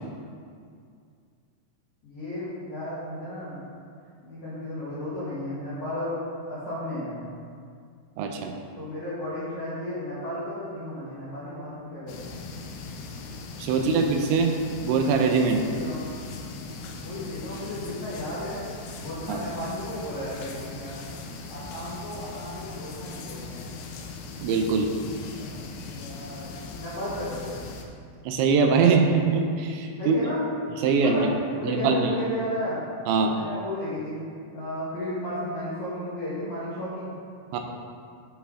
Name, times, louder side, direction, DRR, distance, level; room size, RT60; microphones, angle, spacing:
voice 1, 2.0-3.6 4.2-6.2 6.5-7.1 8.8-12.3 13.8-14.0 15.6-16.0 16.9-18.6 19.0-21.0 21.5-23.7 25.3-25.5 25.9-27.5 30.0-30.4 31.0-32.8 33.3-34.2 34.5-37.1, left 1 dB, 55° left, -10 dB, 2.3 m, -34 dB
voice 2, 8.2-8.6 13.6-14.5 14.8-15.7 19.3-19.4 24.4-24.9 28.3-30.2 30.8-31.3 31.6-32.1 33.1-33.3 37.5-37.6, right 5 dB, 80° right, 3 dB, 2.9 m, -22 dB
sound 1, 12.1-27.8, left 4 dB, 85° left, 3.2 m, -39 dB
11.0 x 5.5 x 3.7 m, 2.3 s
omnidirectional pair, 5.4 m